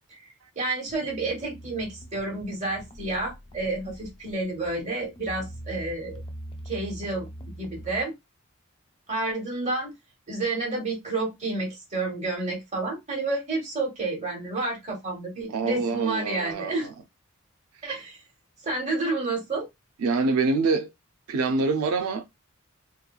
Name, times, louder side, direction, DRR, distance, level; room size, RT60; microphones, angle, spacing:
voice 1, 0.5-6.2 6.7-7.3 7.6-8.1 9.1-9.9 10.3-16.9 17.8-18.2 18.6-19.7, right 2 dB, 35° right, 1.2 m, -30 dB
sound 1, 0.9-8.0, right 1 dB, 25° left, 0.3 m, -43 dB
voice 2, 15.5-16.9 20.0-20.9 21.3-22.2, right 3 dB, 85° right, 0.4 m, -25 dB
2.9 x 2.2 x 2.3 m
head